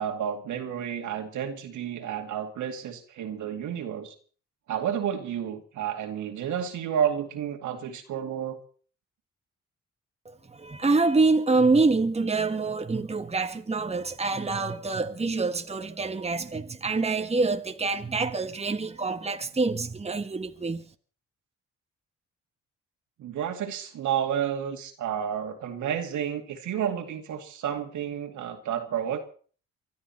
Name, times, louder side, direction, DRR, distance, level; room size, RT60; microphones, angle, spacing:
voice 1, 0.0-4.1 4.7-8.6 23.2-29.2, right 9 dB, 80° right, 2.5 m, -31 dB
voice 2, 10.2-20.8, right 3 dB, 20° right, 1.4 m, -26 dB
24.0 x 12.0 x 4.3 m
cardioid pair, 75°, 30 cm